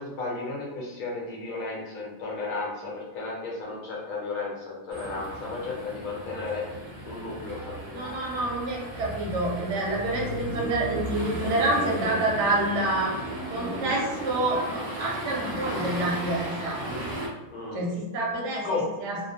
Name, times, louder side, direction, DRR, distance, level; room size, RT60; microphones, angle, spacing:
voice 1, 0.0-6.6 7.0-8.2 17.5-17.8 18.6-18.9, left 3 dB, 75° left, -3 dB, 1.1 m, -34 dB
sound 1, 4.9-17.3, right 1 dB, 85° right, 0.3 m, -35 dB
voice 2, 7.9-13.2 13.5-16.8 17.7-19.2, right 2 dB, 60° right, -3 dB, 0.8 m, -28 dB
2.4 x 2.1 x 2.7 m, 1.1 s
omnidirectional pair, 1.4 m